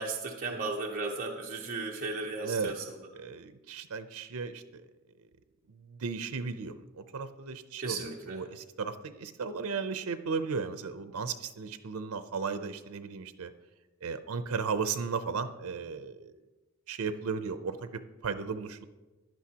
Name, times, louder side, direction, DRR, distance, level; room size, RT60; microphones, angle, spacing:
voice 1, 0.0-2.8 7.8-8.4, right 3 dB, 40° right, -1 dB, 0.8 m, -35 dB
voice 2, 2.4-2.7 3.1-4.8 5.8-13.5 14.0-16.3 16.9-18.8, right 5 dB, 80° right, 10 dB, 0.6 m, -35 dB
15.5 x 10.5 x 2.9 m, 1.2 s
head